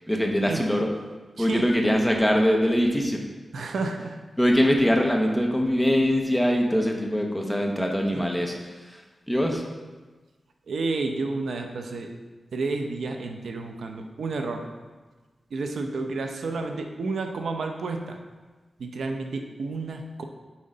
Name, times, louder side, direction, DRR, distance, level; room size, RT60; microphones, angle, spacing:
voice 1, 0.1-0.9 1.4-3.2 4.4-9.6, equal, 5° left, 1 dB, 0.9 m, -23 dB
voice 2, 3.5-4.2 8.1-8.2 10.7-12.1 12.5-14.7 15.5-18.2 18.8-20.2, right 3 dB, 85° right, 4 dB, 0.6 m, -30 dB
7.5 x 3.8 x 5.4 m, 1.3 s
wide cardioid pair, 105°, 0 cm